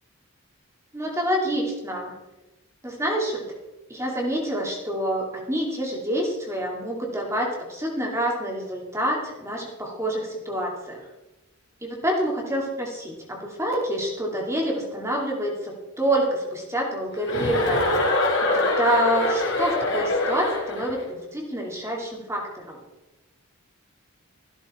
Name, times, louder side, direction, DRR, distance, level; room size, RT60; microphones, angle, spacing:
voice 1, 0.9-2.1 2.8-3.5 3.9-11.0 11.8-17.9 18.4-22.8, right 1 dB, 10° right, -1 dB, 2.4 m, -27 dB
Chuckle chortle, 17.3-21.0, left 2 dB, 55° left, 3.2 m, -24 dB
15.0 x 11.5 x 4.3 m, 1.1 s
head